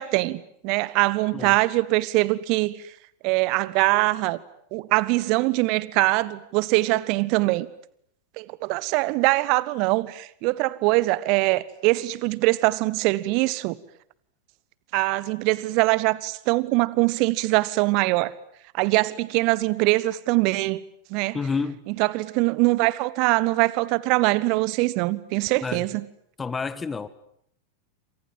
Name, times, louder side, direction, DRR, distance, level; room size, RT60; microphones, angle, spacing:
voice 1, 0.0-2.7 3.2-4.4 4.7-7.7 8.4-13.8 14.9-18.3 18.7-20.8 21.1-21.4 21.9-26.0, right 21 dB, 45° right, 1.3 m, -23 dB
voice 2, 21.3-21.8 25.6-25.8 26.4-27.1, left 5 dB, 15° left, 1.5 m, -29 dB
28.0 x 27.0 x 7.6 m
figure-of-eight pair, 90°, 0 cm